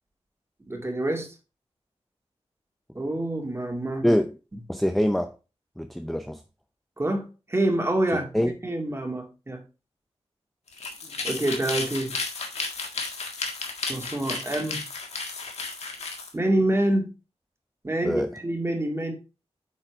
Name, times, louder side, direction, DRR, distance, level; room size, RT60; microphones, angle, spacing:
voice 1, 0.7-1.3 2.9-4.0 7.0-8.3 8.6-9.6 11.2-12.2 13.8-14.8 16.3-17.1 17.8-19.1, right 1 dB, 25° right, 2.2 m, -26 dB
voice 2, 4.7-5.3 5.8-6.4 8.1-8.5 18.0-18.3, equal, ahead, 0.6 m, -24 dB
sound 1, 10.7-16.3, left 3 dB, 80° left, 1.7 m, -33 dB
8.8 x 4.3 x 4.5 m
wide cardioid pair, 95°, 11 cm